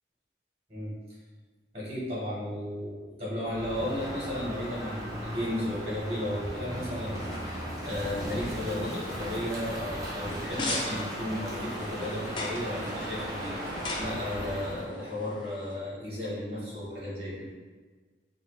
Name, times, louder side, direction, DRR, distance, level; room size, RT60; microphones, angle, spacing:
voice 1, 1.7-17.5, left 1 dB, 35° right, -7 dB, 1.4 m, -34 dB
Crow, 3.4-14.9, equal, 20° right, 0.9 m, -37 dB
sound 1, 10.3-15.8, left 2 dB, 25° left, 0.5 m, -39 dB
5.3 x 2.5 x 3.0 m, 1.4 s
head